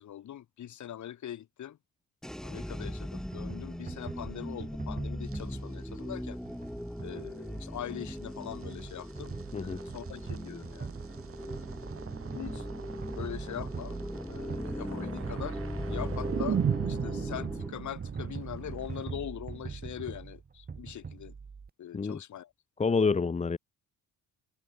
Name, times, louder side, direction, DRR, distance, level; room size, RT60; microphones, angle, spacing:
voice 1, 0.0-1.8 2.4-6.4 7.0-9.4 9.6-10.9 12.3-12.7 13.1-14.0 14.3-15.6 15.9-21.3 21.8-22.5, left 11 dB, 65° left, 6.2 m, -42 dB
sound 1, 2.2-17.7, equal, ahead, 3.4 m, -39 dB
sound 2, 3.3-21.7, right 5 dB, 30° right, 4.9 m, -43 dB
sound 3, 5.3-5.4 6.5-6.6 7.1-7.2 8.2-19.1, right 8 dB, 45° right, 2.7 m, -38 dB
voice 2, 22.8-23.6, left 4 dB, 20° left, 1.3 m, -27 dB
cardioid pair, 150°, 31 cm